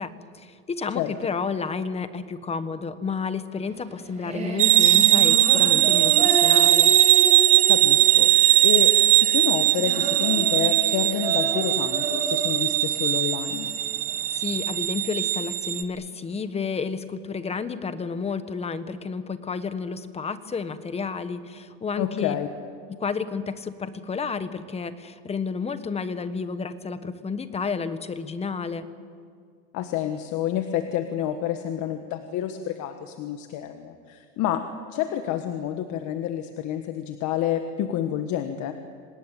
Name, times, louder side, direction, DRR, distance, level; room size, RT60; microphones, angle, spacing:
voice 1, 0.0-6.9 14.3-22.3 22.9-28.9, left 5 dB, 20° left, 11 dB, 1.3 m, -31 dB
Female singing, 3.7-14.7, right 2 dB, 20° right, 6.2 m, -31 dB
sound 1, 4.6-15.8, right 15 dB, 45° right, 1.4 m, -19 dB
voice 2, 7.7-13.7 22.0-22.5 29.7-34.6 34.9-38.7, left 10 dB, 55° left, 7 dB, 1.6 m, -29 dB
26.5 x 19.0 x 9.1 m, 2.1 s
supercardioid pair, 135°, 34 cm